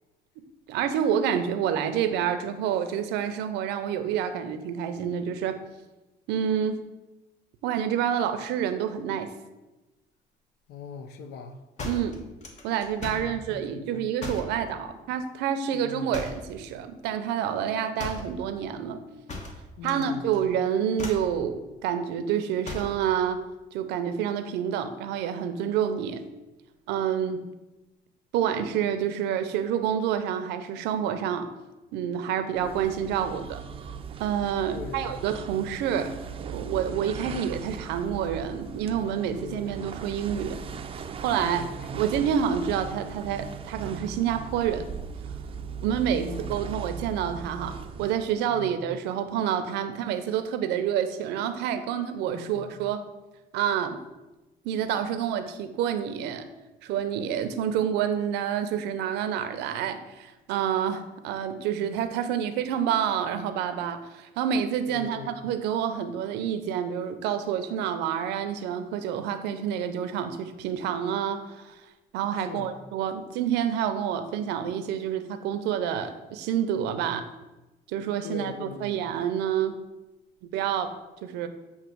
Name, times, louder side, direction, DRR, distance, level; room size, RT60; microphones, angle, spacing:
voice 1, 0.7-5.6 6.3-6.8 7.6-9.3 11.8-12.2 12.6-19.0 19.8-23.4 23.7-26.2 26.9-27.5 28.3-31.5 31.9-33.6 34.2-36.1 36.4-40.6 41.2-41.6 42.0-44.9 45.8-53.1 53.5-54.0 54.6-56.5 56.8-71.8 72.1-77.3 77.9-79.8 80.4-80.9 81.2-81.5, right 9 dB, 90° right, 0.6 m, -28 dB
voice 2, 10.7-11.6 13.0-14.0 15.7-16.2 19.8-20.4 34.7-35.2 37.0-37.5 39.4-39.7 41.4-42.0 45.9-46.7 48.5-48.8 52.3-52.7 64.9-65.4 72.4-72.7 78.2-79.0, left 5 dB, 75° left, 0.7 m, -41 dB
sound 1, 11.8-13.4 14.2-14.6 16.1-16.5 18.0-18.4 19.3-20.1 20.3-20.6 20.9-21.3 22.6-23.0, left 3 dB, 45° left, 1.3 m, -37 dB
sound 2, 32.5-48.3, right 6 dB, 35° right, 0.5 m, -39 dB
8.0 x 2.9 x 6.1 m
cardioid pair, 110°, 17 cm